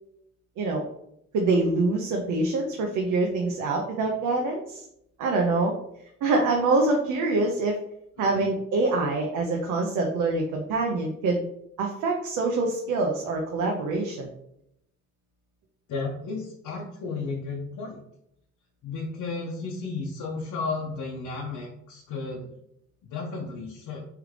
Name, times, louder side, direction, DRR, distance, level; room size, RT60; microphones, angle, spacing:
voice 1, 1.3-4.9 5.2-5.7 6.2-7.8 8.2-11.4 11.8-14.3, right 3 dB, 85° right, 1 dB, 0.6 m, -25 dB
voice 2, 15.9-18.0 18.8-22.5 23.1-24.0, left 4 dB, 80° left, -3 dB, 0.8 m, -33 dB
3.6 x 3.3 x 3.2 m, 0.79 s
cardioid pair, 90°, 30 cm